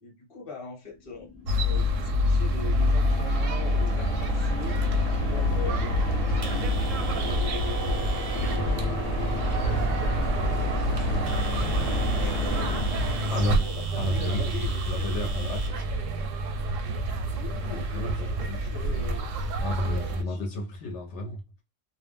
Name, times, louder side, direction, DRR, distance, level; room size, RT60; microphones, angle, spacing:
voice 1, 0.0-4.8 5.3-11.3 11.9-15.6 17.2-19.3 19.8-20.5, left 4 dB, 30° left, 0.8 m, -42 dB
sound 1, 1.0-14.1, left 1 dB, 5° left, 0.4 m, -33 dB
sound 2, 1.4-17.5, right 5 dB, 55° right, 0.5 m, -45 dB
sound 3, 1.5-20.2, equal, 80° right, 1.0 m, -27 dB
voice 2, 13.3-13.6 14.0-15.9 17.7-19.1 19.6-21.6, left 2 dB, 70° left, 0.9 m, -33 dB
2.3 x 2.0 x 3.3 m
omnidirectional pair, 1.3 m